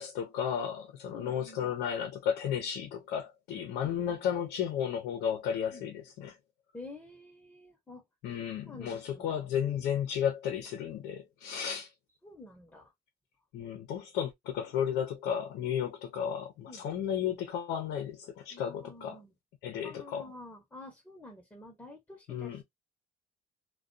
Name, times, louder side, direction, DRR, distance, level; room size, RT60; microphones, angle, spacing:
voice 1, 0.0-6.4 8.2-11.9 13.5-19.2 19.6-20.3 22.3-22.6, left 8 dB, 80° left, 0.6 m, -33 dB
voice 2, 1.1-1.7 5.7-5.8 6.7-9.5 12.2-12.9 16.7-16.9 18.5-19.3 19.8-22.6, left 2 dB, 10° left, 0.8 m, -50 dB
2.3 x 2.2 x 2.4 m
cardioid pair, 110°, 17 cm